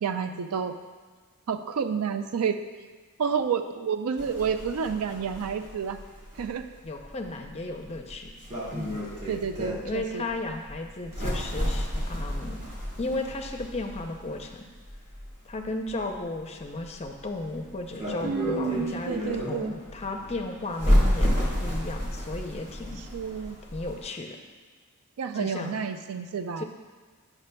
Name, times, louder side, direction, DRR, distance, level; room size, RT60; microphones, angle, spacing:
voice 1, 0.0-0.8 1.5-2.6 3.2-6.0 6.4-6.7 9.3-10.3 18.2-19.7 23.0-23.6 25.2-26.6, right 6 dB, 80° right, 9 dB, 0.4 m, -30 dB
sound 1, 4.2-24.0, equal, 30° right, 1.5 m, -31 dB
voice 2, 6.8-8.3 8.7-9.0 9.8-12.6 13.0-14.7 15.4-23.0 23.7-24.4 25.3-25.8 26.6-26.7, left 2 dB, 30° left, 3 dB, 0.5 m, -35 dB
9.4 x 5.9 x 2.2 m, 1.5 s
head